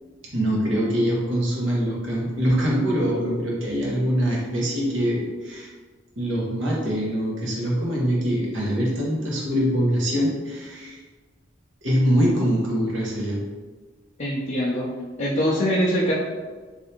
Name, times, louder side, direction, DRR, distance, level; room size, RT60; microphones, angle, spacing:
voice 1, 0.3-5.7 6.2-11.0 11.8-13.4, equal, 70° right, -4 dB, 1.0 m, -23 dB
voice 2, 14.2-14.9 15.2-16.1, equal, 40° left, -6 dB, 0.4 m, -23 dB
3.3 x 2.6 x 2.8 m, 1.4 s
head